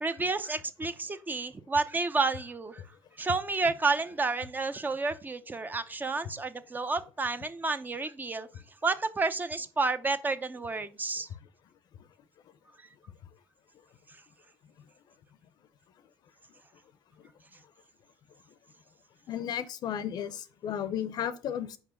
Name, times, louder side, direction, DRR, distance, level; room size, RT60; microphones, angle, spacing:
voice 1, 0.0-2.8 3.2-8.5 8.8-11.3, right 3 dB, 25° right, 0.7 m, -30 dB
voice 2, 19.3-21.8, left 9 dB, 60° left, 0.7 m, -34 dB
5.4 x 4.9 x 5.0 m
supercardioid pair, 75°, 8 cm